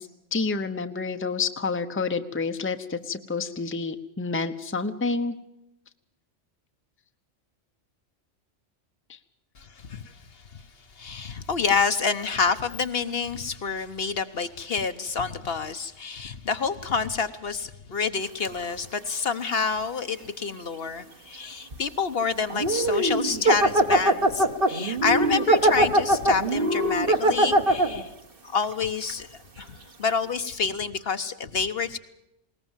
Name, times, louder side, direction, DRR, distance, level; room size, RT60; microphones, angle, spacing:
voice 1, 0.0-5.3, left 4 dB, 10° left, 8 dB, 0.8 m, -29 dB
voice 2, 9.6-10.6 10.9-28.1 28.4-32.0, left 5 dB, 55° left, 10 dB, 1.1 m, -28 dB
sound 1, 18.4-18.6 21.7-21.8 22.4-28.0 28.6-28.7 29.1-29.2, right 1 dB, 50° right, 1.6 m, -21 dB
21.0 x 19.0 x 7.3 m, 0.86 s
omnidirectional pair, 1.2 m